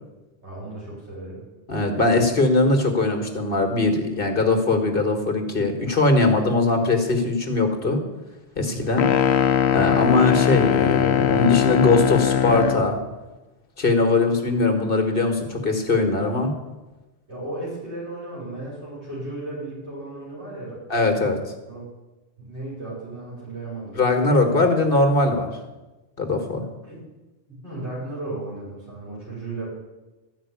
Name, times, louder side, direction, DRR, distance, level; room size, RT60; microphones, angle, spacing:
voice 1, 0.4-1.4 8.7-9.0 17.3-20.8 21.1-21.3 21.7-21.8 22.4-24.0 24.4-24.7 26.8-27.0 27.5-29.7, right 2 dB, 85° right, -6 dB, 6.2 m, -35 dB
voice 2, 1.7-8.0 8.6-9.1 9.7-13.0 13.8-16.5 20.9-21.4 24.0-25.5 26.2-26.6, left 3 dB, 55° left, 4 dB, 1.9 m, -20 dB
sound 1, 9.0-12.9, left 9 dB, 75° left, 1.0 m, -20 dB
14.0 x 5.9 x 9.5 m, 1.1 s
omnidirectional pair, 1.1 m